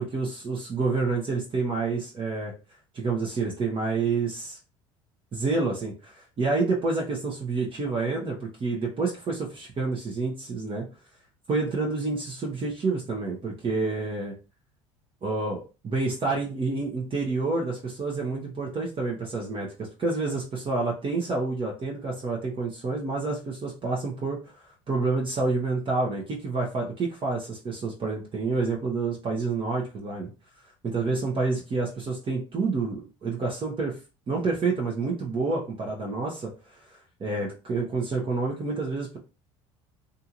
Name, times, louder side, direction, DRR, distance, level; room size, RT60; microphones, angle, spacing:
voice 1, 0.0-2.5 2.9-4.6 5.3-10.8 11.5-14.3 15.2-30.3 30.8-34.0 34.3-39.2, right 3 dB, 35° right, -2 dB, 0.9 m, -28 dB
2.7 x 2.5 x 2.8 m, 0.32 s
hypercardioid pair, 75°, 15 cm